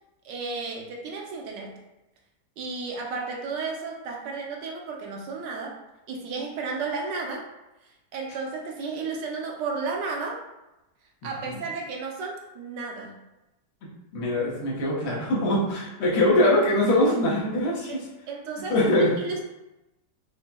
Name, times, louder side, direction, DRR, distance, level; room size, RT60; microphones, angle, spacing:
voice 1, 0.2-1.8 2.6-5.8 6.1-7.5 7.8-10.4 11.2-13.2 17.9-19.4, right 4 dB, 80° right, 0 dB, 1.3 m, -33 dB
voice 2, 14.1-17.9 18.7-19.1, left 1 dB, 70° left, -6 dB, 1.5 m, -22 dB
5.7 x 2.0 x 2.2 m, 0.97 s
omnidirectional pair, 1.9 m